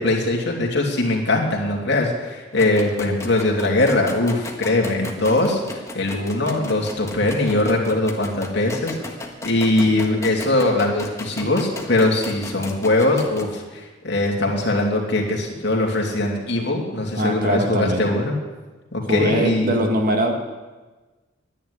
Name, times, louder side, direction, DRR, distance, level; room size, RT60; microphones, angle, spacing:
voice 1, 0.0-9.0 9.4-18.3 18.9-19.8, left 2 dB, 60° left, 0 dB, 2.8 m, -21 dB
sound 1, 2.5-13.5, left 2 dB, 15° left, 1.4 m, -36 dB
voice 2, 17.1-18.0 19.0-20.3, right 1 dB, 45° right, 3 dB, 1.8 m, -22 dB
11.0 x 10.5 x 9.9 m, 1.2 s
head